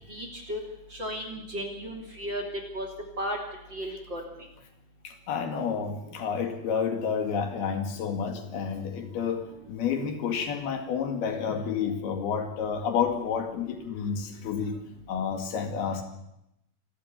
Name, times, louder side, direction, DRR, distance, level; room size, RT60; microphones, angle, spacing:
voice 1, 0.1-0.6 0.9-2.4 2.7-2.9 3.2-3.4 3.7-4.2, equal, 30° right, 3 dB, 3.1 m, -34 dB
voice 2, 5.0-14.8 15.1-16.0, left 6 dB, 70° left, 6 dB, 3.9 m, -30 dB
27.0 x 13.0 x 9.7 m, 0.85 s
omnidirectional pair, 4.8 m